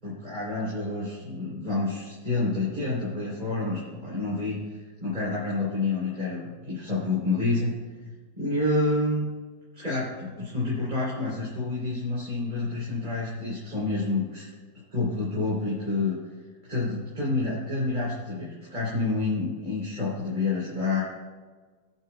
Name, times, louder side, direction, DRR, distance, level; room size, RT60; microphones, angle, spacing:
voice 1, 0.0-7.8 8.4-9.3 9.7-14.5 14.9-16.2 16.7-21.0, left 2 dB, 25° right, -8 dB, 3.6 m, -28 dB
20.0 x 8.7 x 2.3 m, 1.4 s
omnidirectional pair, 1.7 m